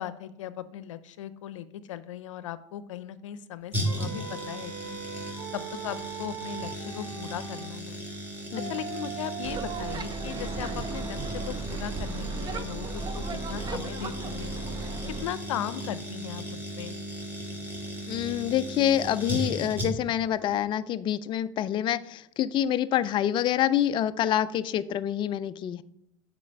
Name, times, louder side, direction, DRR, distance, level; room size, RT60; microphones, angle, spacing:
voice 1, 0.0-5.0 5.5-8.0 8.6-14.5 15.2-17.0, left 11 dB, 85° left, 15 dB, 0.6 m, -38 dB
sound 1, 3.7-20.2 20.5-20.6, equal, 10° right, 2.3 m, -36 dB
sound 2, 3.8-7.7 8.5-15.0, right 7 dB, 75° right, 1.3 m, -42 dB
sound 3, 9.4-15.3, right 3 dB, 25° right, 0.6 m, -36 dB
voice 2, 18.1-25.8, left 11 dB, 30° left, 13 dB, 0.3 m, -27 dB
7.4 x 4.8 x 5.2 m, 0.81 s
supercardioid pair, 105°, 16 cm